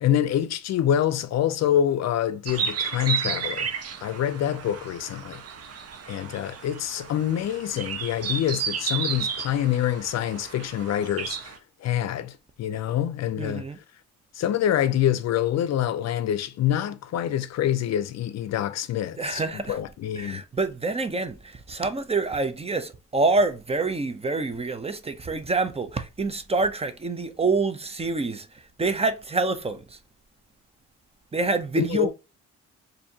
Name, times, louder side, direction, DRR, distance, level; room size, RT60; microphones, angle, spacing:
voice 1, 0.0-3.7 4.0-5.4 6.1-11.5 11.8-13.6 14.3-20.4 31.8-32.1, left 10 dB, 60° left, 0.5 m, -26 dB
sound 1, 2.5-11.6, right 6 dB, 55° right, 0.8 m, -32 dB
voice 2, 13.4-13.8 19.2-19.8 20.2-28.5 28.8-30.0 31.3-32.1, right 3 dB, 20° right, 0.6 m, -26 dB
4.3 x 2.7 x 2.7 m
cardioid pair, 90°, 30 cm